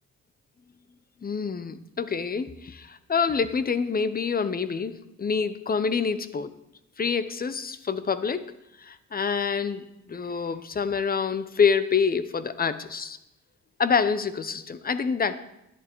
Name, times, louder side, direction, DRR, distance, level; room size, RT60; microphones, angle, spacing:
voice 1, 1.2-6.5 7.0-8.5 8.8-13.2 13.8-15.4, left 5 dB, 30° left, 13 dB, 0.8 m, -27 dB
11.0 x 10.5 x 4.6 m, 0.89 s
cardioid pair, 90°, 30 cm